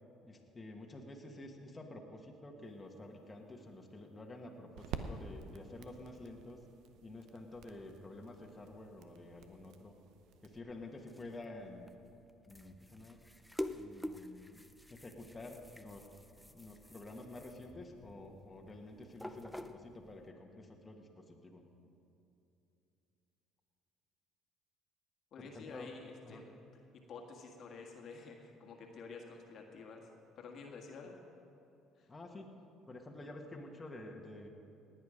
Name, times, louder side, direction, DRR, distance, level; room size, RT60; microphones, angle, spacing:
voice 1, 0.2-6.6 7.0-9.9 10.4-11.9 12.5-13.2 13.7-14.6 14.9-16.1 16.4-21.7 25.4-25.9 26.2-26.5 32.1-32.6 32.9-34.5, left 2 dB, 25° left, 0 dB, 1.7 m, -50 dB
sound 1, 2.7-10.6, right 6 dB, 70° right, 0.8 m, -50 dB
sound 2, 10.7-20.3, left 1 dB, 5° left, 0.7 m, -48 dB
voice 2, 25.3-26.6 27.1-30.1 30.4-31.2 32.0-32.1, left 4 dB, 55° left, 1 dB, 1.7 m, -50 dB
18.5 x 9.3 x 5.2 m, 2.7 s
hypercardioid pair, 70°, 0 cm